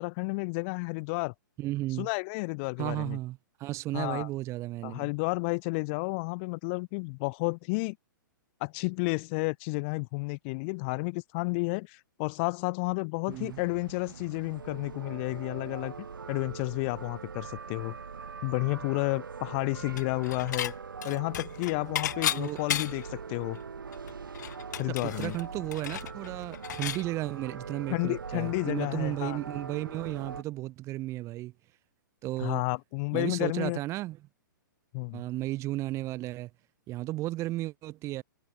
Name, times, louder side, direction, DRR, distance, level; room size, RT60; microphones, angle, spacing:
voice 1, 0.0-1.3 2.0-3.2 3.9-4.3 4.8-8.0 8.6-15.9 16.3-18.0 18.4-20.7 21.0-23.6 24.8-25.4 27.9-29.4 32.4-33.8 34.9-35.2, left 31 dB, 35° left, 0.5 m, -31 dB
voice 2, 1.6-2.1 2.8-5.1 13.3-13.6 22.3-22.6 25.0-31.5 32.2-32.6 33.1-34.2 35.1-36.5 36.9-38.2, right 17 dB, 25° right, 0.6 m, -34 dB
sound 1, 13.3-30.4, right 5 dB, 80° right, 1.0 m, -42 dB
Dishes pots and pans / Chink clink, 20.0-20.7 21.0-23.1 23.6-23.7 23.9-27.0, left 11 dB, 55° left, 1.2 m, -34 dB
figure-of-eight pair, 115°, 11 cm